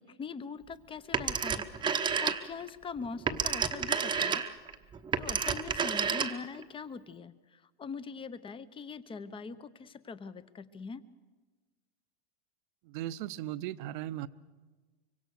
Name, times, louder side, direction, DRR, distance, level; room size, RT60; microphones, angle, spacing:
voice 1, 0.0-1.9 2.2-4.4 5.2-11.0, left 5 dB, 15° left, 15 dB, 0.9 m, -42 dB
Telephone, 1.1-2.7 3.0-6.6, right 6 dB, 15° right, 1.0 m, -30 dB
voice 2, 12.8-14.3, right 13 dB, 55° right, 14 dB, 0.9 m, -37 dB
24.5 x 24.0 x 6.5 m, 1.3 s
hypercardioid pair, 125°, 30 cm